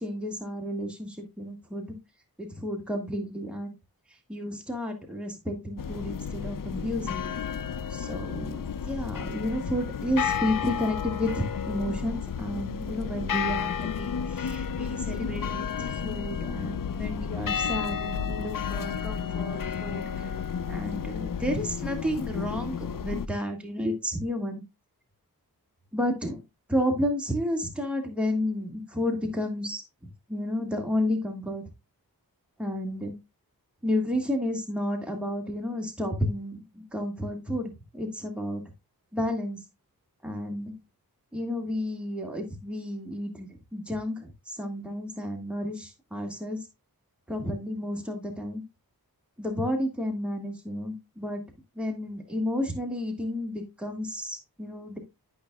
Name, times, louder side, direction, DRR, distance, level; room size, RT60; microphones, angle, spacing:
voice 1, 0.0-1.9 2.4-3.7 4.3-7.4 7.9-20.3 20.7-24.6 25.9-26.4 26.7-29.8 30.3-31.6 32.6-33.1 33.8-38.6 39.1-39.6 40.2-40.7 41.3-46.6 47.3-48.6 49.4-51.4 51.8-55.0, left 1 dB, 5° right, 2 dB, 1.9 m, -31 dB
sound 1, 5.8-23.3, left 7 dB, 60° left, 0.5 m, -32 dB
12.0 x 5.4 x 2.3 m, 0.23 s
wide cardioid pair, 55°, 38 cm